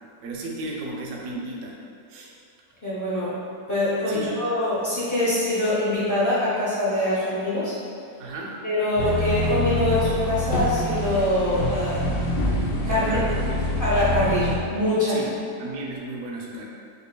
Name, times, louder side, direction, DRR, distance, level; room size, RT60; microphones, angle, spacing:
voice 1, 0.2-1.8 2.1-2.3 4.1-4.3 8.2-8.6 12.9-13.9 15.1-15.3 15.6-16.6, right 2 dB, 70° right, -2 dB, 0.8 m, -34 dB
voice 2, 2.8-3.3 3.7-7.7 8.6-12.0 12.8-13.2 13.8-15.1, left 1 dB, 30° left, -10 dB, 0.3 m, -24 dB
sound 1, 9.0-14.6, left 1 dB, 85° left, 1.2 m, -26 dB
4.3 x 2.8 x 2.2 m, 2.4 s
omnidirectional pair, 1.7 m